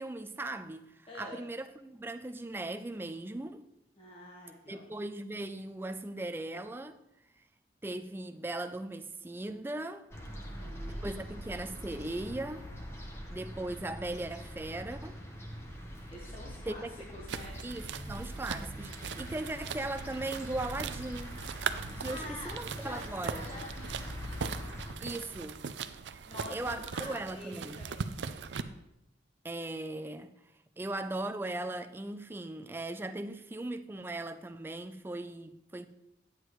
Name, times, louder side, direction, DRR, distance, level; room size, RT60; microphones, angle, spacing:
voice 1, 0.0-3.6 4.7-7.0 7.8-10.1 10.9-12.7 13.3-15.2 16.7-16.9 17.6-21.4 22.0-23.5 25.0-25.6 26.5-27.8 29.4-30.3 30.8-35.9, right 2 dB, 10° right, 0.3 m, -38 dB
voice 2, 1.1-1.4 4.0-4.8 10.3-11.1 16.1-16.8 17.1-17.5 21.9-23.0 23.3-24.1 26.2-28.2, left 1 dB, 30° left, 1.2 m, -47 dB
sound 1, 10.1-25.0, equal, 15° left, 0.9 m, -43 dB
sound 2, 17.3-28.6, right 6 dB, 80° right, 0.4 m, -40 dB
9.6 x 8.1 x 3.1 m
head